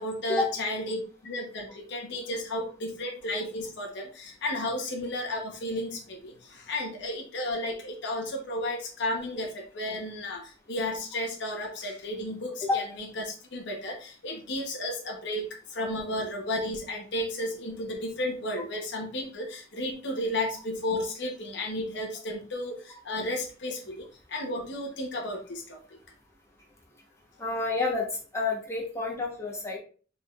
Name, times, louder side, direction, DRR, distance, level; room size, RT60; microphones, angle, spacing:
voice 1, 0.0-25.8, left 1 dB, 65° left, 1 dB, 1.0 m, -33 dB
voice 2, 27.4-28.1 28.3-29.8, left 3 dB, 15° left, -2 dB, 1.1 m, -29 dB
5.0 x 3.6 x 2.4 m, 0.40 s
head